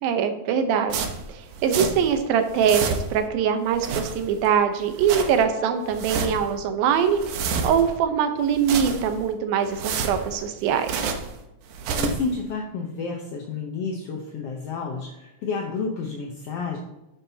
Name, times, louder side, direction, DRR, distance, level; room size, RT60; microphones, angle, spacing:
voice 1, 0.0-11.1, right 7 dB, 90° right, 7 dB, 2.7 m, -23 dB
sound 1, 0.9-2.2 2.4-3.3 3.7-4.5 4.8-5.4 5.8-6.5 6.9-8.0 8.4-9.3 9.6-11.4 11.7-12.3, right 5 dB, 70° right, 2.3 m, -30 dB
voice 2, 12.0-16.8, left 4 dB, 70° left, 1 dB, 1.4 m, -30 dB
9.9 x 9.2 x 2.8 m, 0.95 s
omnidirectional pair, 4.0 m